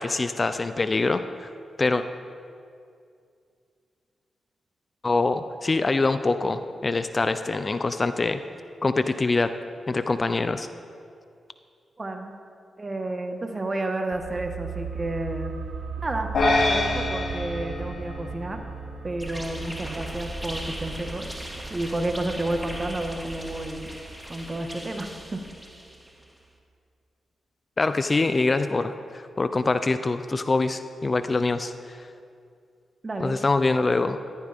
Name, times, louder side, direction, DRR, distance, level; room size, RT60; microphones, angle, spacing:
voice 1, 0.0-1.5 1.8-2.0 5.0-8.4 8.8-9.5 9.9-10.7 27.8-32.1 33.2-34.2, left 3 dB, 40° left, 10 dB, 0.6 m, -24 dB
voice 2, 12.0-12.4 12.8-15.5 16.0-18.6 19.0-21.3 21.7-23.9 24.3-25.4 33.0-33.4, right 2 dB, 35° right, 4 dB, 1.6 m, -31 dB
sound 1, 14.1-25.5 25.8-25.9, right 5 dB, 90° right, 0.8 m, -38 dB
sound 2, 16.3-18.8, left 2 dB, 70° left, 2.5 m, -26 dB
sound 3, 19.2-26.2, equal, 5° right, 2.2 m, -38 dB
14.5 x 14.5 x 3.6 m, 2.4 s
cardioid pair, 55°, 0 cm